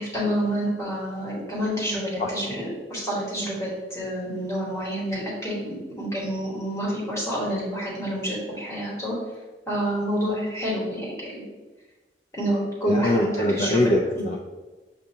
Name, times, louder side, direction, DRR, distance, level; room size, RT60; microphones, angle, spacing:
voice 1, 0.0-9.1 9.7-11.5 12.3-13.9, equal, 15° left, -6 dB, 1.4 m, -28 dB
voice 2, 12.8-14.4, left 1 dB, 40° left, 0 dB, 0.3 m, -22 dB
6.4 x 2.6 x 2.8 m, 1.2 s
head